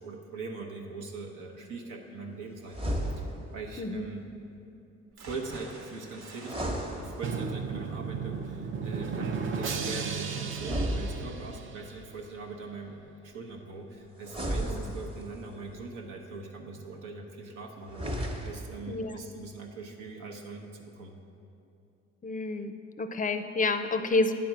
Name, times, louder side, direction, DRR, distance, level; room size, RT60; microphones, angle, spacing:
voice 1, 0.0-4.2 5.2-13.0 13.2-21.2, right 3 dB, 85° right, 1 dB, 1.0 m, -42 dB
sound 1, 2.7-3.6 6.3-7.7 10.5-11.7 14.2-15.5 17.8-18.8, equal, 20° right, 0.9 m, -34 dB
sound 2, 5.1-13.1 13.5-13.6 14.0-14.1, right 2 dB, 65° right, 1.2 m, -52 dB
Drum, 7.2-12.1, right 5 dB, 45° right, 0.5 m, -34 dB
voice 2, 18.9-19.2 22.2-24.3, left 3 dB, 30° left, 8 dB, 0.4 m, -29 dB
9.1 x 4.3 x 6.1 m, 2.7 s
cardioid pair, 90°, 30 cm